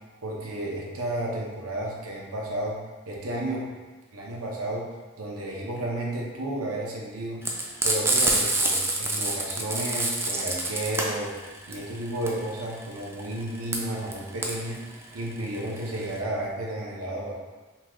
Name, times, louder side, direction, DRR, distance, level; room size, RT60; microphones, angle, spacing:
voice 1, 0.2-3.7 4.1-7.5 7.8-11.4 11.7-17.3, right 1 dB, 80° right, -3 dB, 0.9 m, -32 dB
Frying (food), 7.4-16.2, right 2 dB, 10° right, 0.4 m, -26 dB
5.6 x 2.3 x 3.1 m, 1.2 s
head